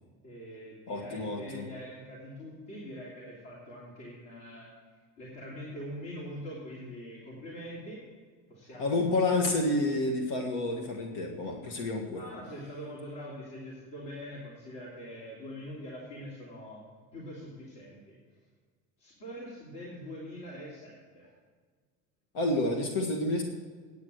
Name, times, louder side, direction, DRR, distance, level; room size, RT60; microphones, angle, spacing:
voice 1, 0.2-4.7 5.2-8.0 8.5-9.2 12.1-16.8 17.1-18.2 19.0-21.3, equal, 55° left, -5 dB, 3.2 m, -43 dB
voice 2, 0.9-1.7 8.8-12.2 22.3-23.4, left 2 dB, 75° left, 2 dB, 1.7 m, -29 dB
9.6 x 9.3 x 6.5 m, 1.5 s
cardioid pair, 130°, 39 cm